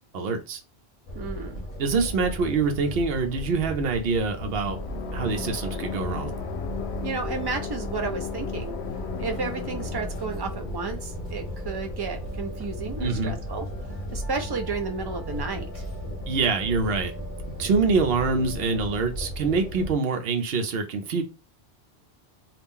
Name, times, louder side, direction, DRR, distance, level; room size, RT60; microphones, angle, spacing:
voice 1, 0.1-0.6 1.8-4.8 5.1-6.4 13.0-13.3 16.3-17.1 17.6-21.2, right 4 dB, 65° right, 0.8 m, -25 dB
sound 1, 1.1-19.9, equal, 40° left, 0.7 m, -36 dB
voice 2, 1.1-1.7 7.0-8.7 9.2-15.8, right 4 dB, 40° right, 0.3 m, -32 dB
sound 2, 4.6-12.3, left 8 dB, 75° left, 0.8 m, -37 dB
sound 3, 9.1-19.0, left 2 dB, 20° left, 1.0 m, -46 dB
2.8 x 2.4 x 3.6 m
omnidirectional pair, 1.1 m